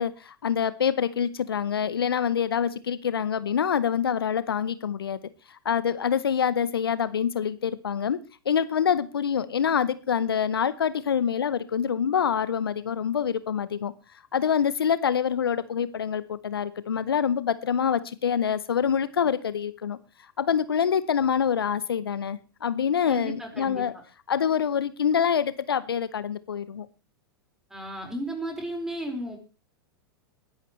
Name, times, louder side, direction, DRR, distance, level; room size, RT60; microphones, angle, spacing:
voice 1, 0.0-5.2 5.5-8.2 8.4-13.9 14.3-20.0 20.4-23.9 24.3-26.9, left 8 dB, 75° left, 16 dB, 0.8 m, -26 dB
voice 2, 23.1-23.8 27.7-29.4, equal, 5° right, 2 dB, 4.8 m, -34 dB
21.0 x 11.0 x 3.2 m, 0.32 s
figure-of-eight pair, 100°, 12 cm